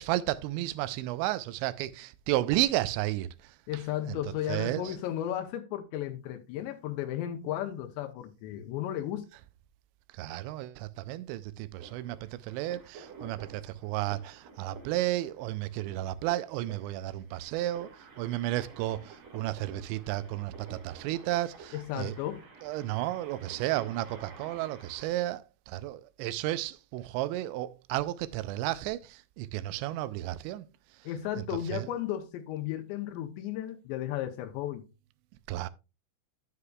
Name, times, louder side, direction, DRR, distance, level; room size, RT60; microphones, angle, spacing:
voice 1, 0.0-4.2 4.5-4.9 10.1-22.2 22.6-30.7 31.4-31.9 35.5-35.7, right 15 dB, 85° right, 2.9 m, -33 dB
voice 2, 3.7-9.3 21.7-22.4 31.0-34.9, left 11 dB, 85° left, 2.9 m, -34 dB
sound 1, 11.8-25.1, right 4 dB, 45° right, 2.6 m, -51 dB
9.7 x 9.4 x 2.3 m
omnidirectional pair, 5.1 m